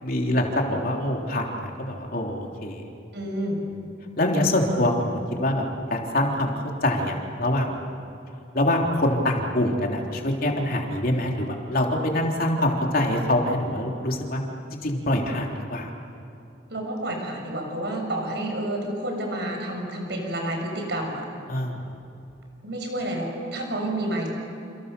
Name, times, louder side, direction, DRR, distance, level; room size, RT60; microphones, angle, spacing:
voice 1, 0.0-2.9 4.2-7.8 8.5-14.4 14.7-15.9 21.5-21.8, left 1 dB, 50° left, 0 dB, 3.4 m, -25 dB
voice 2, 3.1-3.6 16.7-21.2 22.6-24.3, right 1 dB, 60° right, 2 dB, 6.8 m, -29 dB
28.5 x 28.0 x 7.0 m, 2.8 s
head